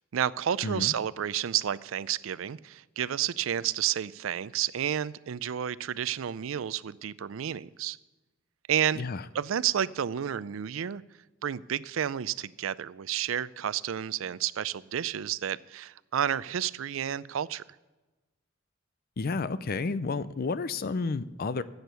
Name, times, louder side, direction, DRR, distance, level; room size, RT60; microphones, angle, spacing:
voice 1, 0.1-8.0 8.7-9.0 9.3-11.0 11.4-17.6, right 9 dB, 90° right, 0.4 m, -31 dB
voice 2, 0.6-0.9 9.0-9.2 19.2-21.6, left 4 dB, 50° left, 0.5 m, -31 dB
15.0 x 8.0 x 6.8 m
head